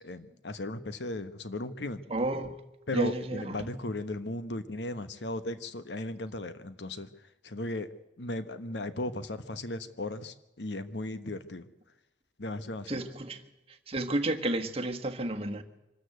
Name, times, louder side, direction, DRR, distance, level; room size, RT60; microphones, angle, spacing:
voice 1, 0.0-2.0 2.9-7.1 7.4-7.9 8.2-11.6 12.4-13.1, left 1 dB, 75° left, 11 dB, 1.2 m, -36 dB
voice 2, 2.1-2.5 2.9-3.6 12.9-13.4 13.9-15.6, right 1 dB, 35° right, 5 dB, 1.5 m, -31 dB
24.5 x 13.5 x 7.9 m, 0.96 s
head